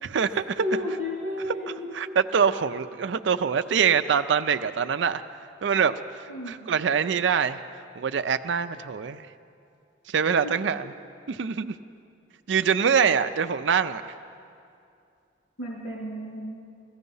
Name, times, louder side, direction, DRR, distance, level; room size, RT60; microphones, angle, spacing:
voice 1, 0.0-0.6 1.9-5.2 5.6-7.6 8.0-9.3 10.1-10.9 11.3-11.8 12.5-14.2, right 7 dB, 70° right, 11 dB, 0.4 m, -24 dB
voice 2, 0.6-2.2 6.3-6.6 10.4-10.5 10.8-10.9 12.9-13.1 15.6-16.5, left 1 dB, 80° left, -5 dB, 2.9 m, -33 dB
16.0 x 14.5 x 5.5 m, 2.5 s
head